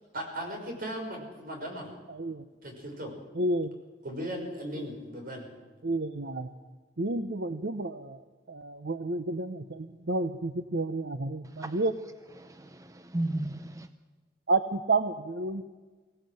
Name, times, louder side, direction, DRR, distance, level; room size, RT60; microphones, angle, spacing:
voice 1, 0.1-1.9 2.6-3.1 4.0-5.5, equal, 55° right, 3 dB, 5.8 m, -37 dB
voice 2, 3.4-3.7 5.8-6.5 7.0-8.2 8.5-11.9 14.5-15.6, right 2 dB, 70° right, 9 dB, 0.9 m, -30 dB
voice 3, 11.4-13.9, right 1 dB, 20° right, 10 dB, 0.6 m, -36 dB
23.5 x 17.0 x 7.8 m, 1.4 s
head